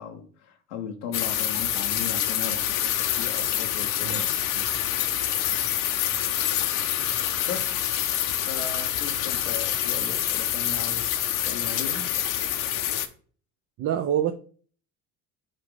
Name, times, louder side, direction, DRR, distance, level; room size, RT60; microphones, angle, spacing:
voice 1, 0.0-4.3 7.5-7.8 8.4-12.1, left 7 dB, 90° left, 1.1 m, -37 dB
sound 1, 1.1-13.1, left 11 dB, 60° left, 0.8 m, -26 dB
voice 2, 13.8-14.3, right 10 dB, 45° right, 0.6 m, -26 dB
6.4 x 3.9 x 3.8 m
hypercardioid pair, 80°, 35 cm